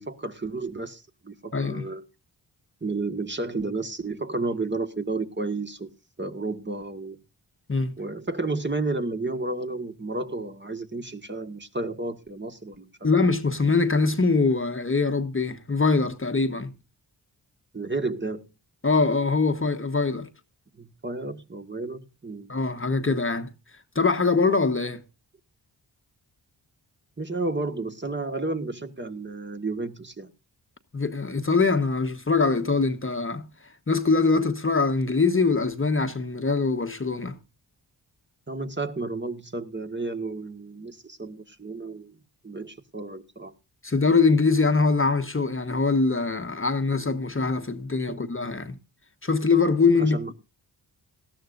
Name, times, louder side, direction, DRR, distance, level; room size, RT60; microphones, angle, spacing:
voice 1, 0.0-2.0 2.8-5.9 6.2-7.2 8.0-12.9 17.7-18.5 20.7-22.5 27.2-30.3 38.5-42.2 42.4-43.5 48.1-48.2 50.0-50.3, right 3 dB, 25° right, 1.7 m, -32 dB
voice 2, 1.5-1.9 7.7-7.9 13.0-16.7 18.8-20.3 22.5-25.0 30.9-37.4 43.8-48.8 49.2-50.2, left 4 dB, 25° left, 1.2 m, -23 dB
18.5 x 13.0 x 2.6 m
supercardioid pair, 45°, 45 cm